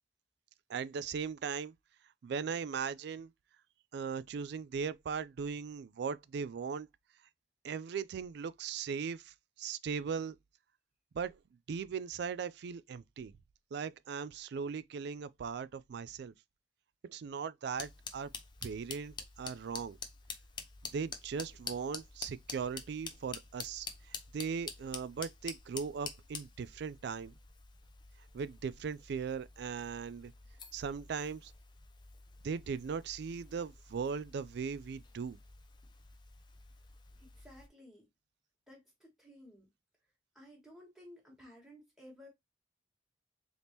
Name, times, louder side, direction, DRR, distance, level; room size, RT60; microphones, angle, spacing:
voice 1, 0.7-1.7 2.2-3.3 3.9-6.9 7.6-10.4 11.1-11.4 11.7-13.3 13.7-16.3 17.0-18.3 18.6-20.0 20.9-27.3 28.3-30.3 30.7-31.5 32.4-35.4, right 6 dB, 65° right, 0.3 m, -38 dB
sound 1, 17.7-37.7, left 5 dB, 25° left, 0.7 m, -48 dB
voice 2, 37.2-38.1 38.7-39.7 40.3-42.3, left 1 dB, ahead, 1.5 m, -56 dB
4.0 x 3.5 x 2.9 m
head